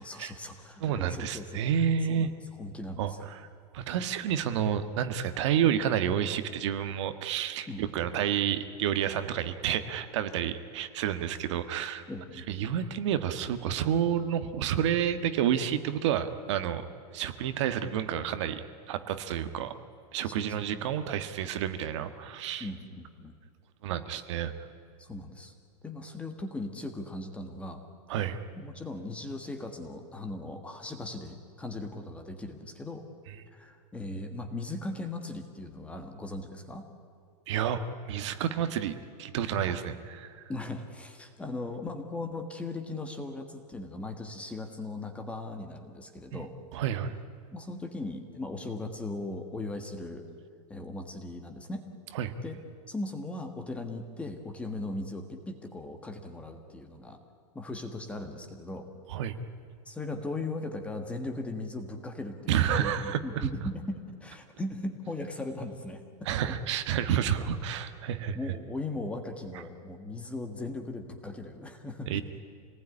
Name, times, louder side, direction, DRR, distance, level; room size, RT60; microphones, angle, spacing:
voice 1, 0.0-1.6 2.1-2.3 2.6-3.3 7.7-7.8 12.1-12.7 20.2-20.8 22.6-23.3 25.0-25.5 25.8-27.8 28.5-33.0 33.5-36.8 39.6-39.8 40.5-46.5 47.5-50.3 50.7-51.8 52.4-52.6 52.9-57.2 57.5-58.9 59.8-66.0 68.3-72.1, left 2 dB, 5° left, 6 dB, 1.5 m, -38 dB
voice 2, 0.8-2.3 3.0-3.4 3.7-12.0 12.5-16.8 17.1-19.7 20.1-22.7 23.8-24.5 28.1-28.4 37.5-40.4 46.3-46.4 46.7-47.1 52.1-52.3 59.1-59.3 62.5-63.5 66.2-68.4 72.1-72.2, right 9 dB, 45° right, 10 dB, 1.5 m, -30 dB
27.5 x 19.5 x 9.8 m, 2.4 s
supercardioid pair, 175°, 20 cm